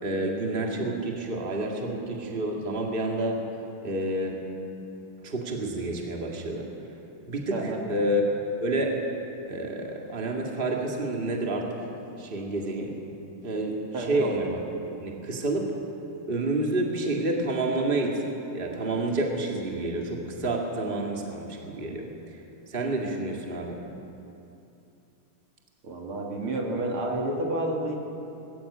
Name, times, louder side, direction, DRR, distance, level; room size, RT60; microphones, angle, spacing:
voice 1, 0.0-3.4 3.8-4.4 5.2-6.7 7.3-8.2 8.6-8.9 9.5-11.9 12.2-13.0 13.4-14.6 15.0-15.7 16.3-18.2 18.5-22.1 22.7-23.8, right 2 dB, 25° right, 0 dB, 2.1 m, -29 dB
voice 2, 7.5-7.9 13.9-14.2 25.8-27.9, right 1 dB, 75° right, 0 dB, 3.2 m, -30 dB
20.0 x 15.5 x 8.5 m, 2.8 s
omnidirectional pair, 2.4 m